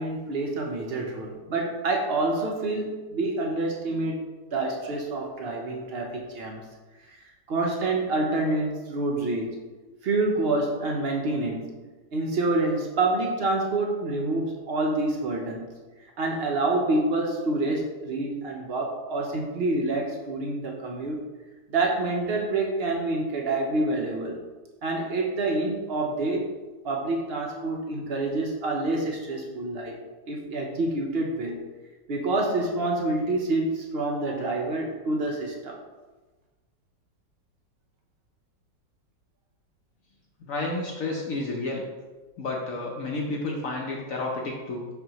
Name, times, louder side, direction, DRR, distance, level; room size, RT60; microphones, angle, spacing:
voice 1, 0.0-4.2 4.5-6.7 7.1-9.6 10.0-11.7 12.1-15.7 16.0-21.2 21.7-24.4 24.8-26.5 26.8-30.0 30.3-31.6 32.1-35.8, right 2 dB, 70° right, 1 dB, 0.5 m, -27 dB
voice 2, 40.4-41.8 42.4-44.9, left 2 dB, 60° left, -1 dB, 1.0 m, -31 dB
5.9 x 5.5 x 2.9 m, 1.2 s
omnidirectional pair, 1.9 m